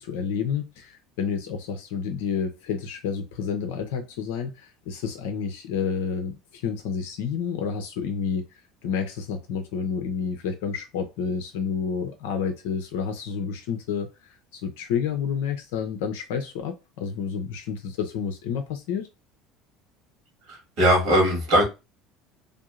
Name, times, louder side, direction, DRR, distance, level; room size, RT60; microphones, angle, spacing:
voice 1, 0.0-8.4 8.8-19.1, left 6 dB, 65° left, 0.4 m, -30 dB
voice 2, 20.5-21.6, equal, 60° right, 2.0 m, -20 dB
3.4 x 2.7 x 2.4 m
figure-of-eight pair, 65°, 0 cm